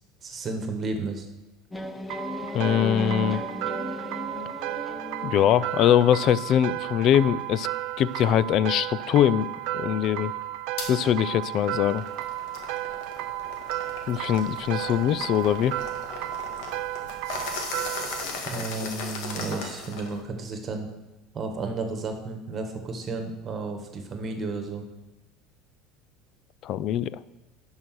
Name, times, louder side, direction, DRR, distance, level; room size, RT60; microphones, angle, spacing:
voice 1, 0.2-1.3 18.5-20.9 21.3-24.8, right 3 dB, 30° right, 5 dB, 1.6 m, -32 dB
sound 1, 1.7-6.4, left 1 dB, 10° left, 0.7 m, -35 dB
sound 2, 2.1-18.2, right 16 dB, 70° right, 0.3 m, -33 dB
voice 2, 2.5-3.4 5.2-7.7 8.0-9.5 9.7-10.3 10.9-12.0 14.1-15.8 26.6-27.2, left 10 dB, 50° left, 18 dB, 0.4 m, -22 dB
sound 3, 10.8-10.9 11.4-20.2, left 4 dB, 70° left, 1.9 m, -37 dB
11.0 x 5.6 x 6.1 m, 1.1 s
supercardioid pair, 120°, 0 cm